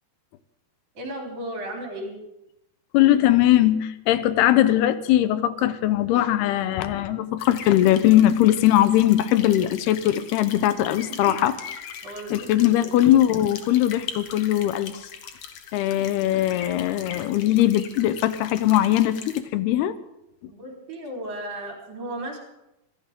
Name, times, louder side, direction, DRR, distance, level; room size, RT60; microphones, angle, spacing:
voice 1, 0.9-2.2 12.0-13.0 20.5-22.4, right 1 dB, 50° right, 0 dB, 5.0 m, -35 dB
voice 2, 2.9-11.5 12.3-15.0 15.7-19.9, left 13 dB, 90° left, 13 dB, 2.8 m, -20 dB
sound 1, 7.4-19.4, left 7 dB, 65° left, 1.6 m, -40 dB
26.0 x 14.0 x 3.7 m, 0.88 s
omnidirectional pair, 4.5 m